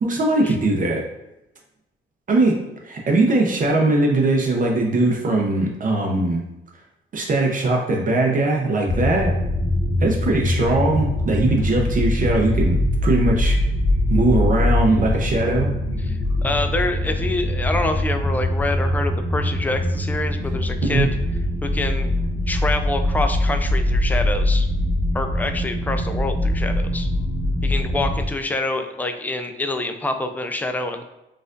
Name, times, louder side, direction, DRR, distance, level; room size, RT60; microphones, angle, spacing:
voice 1, 0.0-1.0 2.3-2.6 2.8-6.4 7.1-9.3 10.0-13.6 14.1-15.7 20.9-21.1, right 2 dB, 40° right, 0 dB, 0.6 m, -20 dB
sound 1, 8.8-28.3, left 1 dB, 20° right, 1.0 m, -22 dB
voice 2, 16.0-21.1 21.6-22.1 22.5-24.7 25.1-27.1 27.6-31.0, left 2 dB, 10° left, 7 dB, 0.3 m, -26 dB
4.2 x 2.5 x 2.5 m, 0.91 s
cardioid pair, 90°, 20 cm